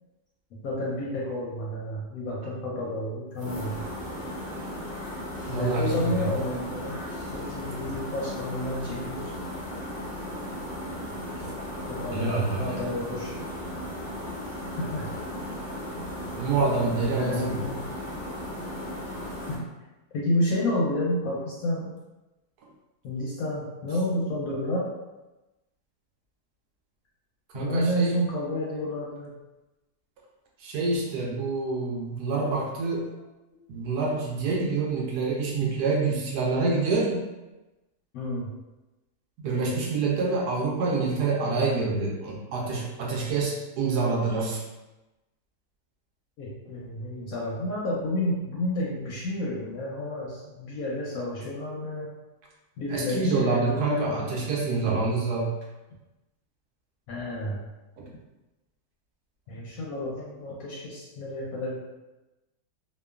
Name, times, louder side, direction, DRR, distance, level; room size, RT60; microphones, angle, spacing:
voice 1, 0.6-3.8 5.5-7.0 7.3-9.3 11.9-13.3 14.8-15.1 16.9-17.8 19.5-19.6 20.1-21.9 23.0-24.9 27.5-29.3 33.5-33.6 35.6-35.7 38.1-38.5 46.4-52.1 52.8-54.3 57.1-57.6 59.5-61.8, left 1 dB, 70° left, -5 dB, 0.9 m, -30 dB
sound 1, 3.3-19.6, left 1 dB, 45° left, 0.6 m, -36 dB
voice 2, 5.5-6.1 12.1-12.7 16.4-17.6 27.5-28.1 30.6-33.1 33.7-37.2 39.4-44.6 52.9-55.5 58.0-58.1, right 3 dB, 75° right, -2 dB, 1.1 m, -27 dB
2.9 x 2.1 x 2.3 m, 1.0 s
omnidirectional pair, 1.8 m